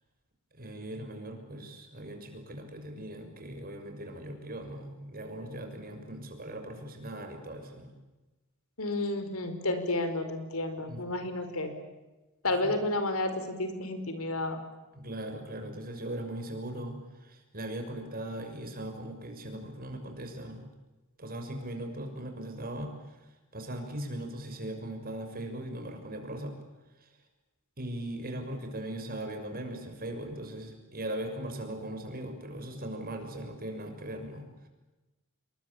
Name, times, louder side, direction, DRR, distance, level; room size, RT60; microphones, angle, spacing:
voice 1, 0.5-7.9 10.9-11.2 12.4-12.7 14.9-20.7 21.2-23.2 23.5-26.5 27.0-27.1 27.8-34.7, right 1 dB, 45° right, 5 dB, 6.5 m, -39 dB
voice 2, 8.8-11.7 12.4-14.6, left 2 dB, 80° left, 9 dB, 5.0 m, -31 dB
28.0 x 23.0 x 8.7 m, 1.1 s
head